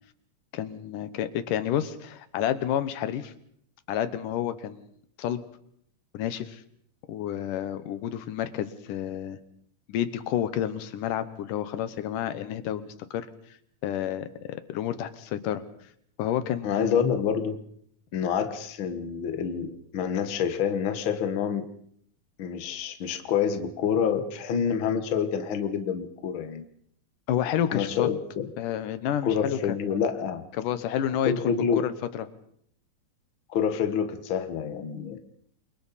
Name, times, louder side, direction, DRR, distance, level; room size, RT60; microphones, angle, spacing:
voice 1, 0.5-3.3 3.9-4.9 5.2-5.4 6.1-6.6 7.1-9.4 9.9-13.3 13.8-15.6 16.2-17.0 27.3-28.1 28.6-29.6 30.5-32.3, left 10 dB, 90° left, 12 dB, 2.7 m, -30 dB
voice 2, 16.6-17.6 18.1-21.7 22.4-26.6 27.7-28.5 29.2-30.4 31.2-31.9 33.5-35.2, left 7 dB, 50° left, 7 dB, 1.9 m, -27 dB
29.0 x 23.5 x 4.2 m, 0.66 s
omnidirectional pair, 3.6 m